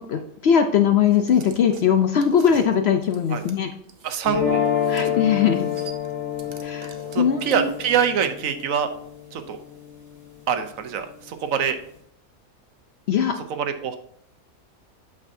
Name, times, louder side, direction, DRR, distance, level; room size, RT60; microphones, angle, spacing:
voice 1, 0.0-3.7 4.9-5.7 6.6-7.6 13.1-13.4, left 8 dB, 65° left, 6 dB, 0.7 m, -20 dB
sound 1, 1.1-4.2 4.6-5.1 5.3-8.0, right 5 dB, 45° right, 0.7 m, -45 dB
voice 2, 4.0-4.7 7.1-8.9 9.3-9.6 10.5-11.8 13.5-14.0, right 8 dB, 70° right, 8 dB, 1.1 m, -25 dB
sound 2, 4.2-10.3, left 8 dB, 10° left, 2.3 m, -28 dB
8.6 x 6.4 x 2.6 m, 0.69 s
omnidirectional pair, 1.5 m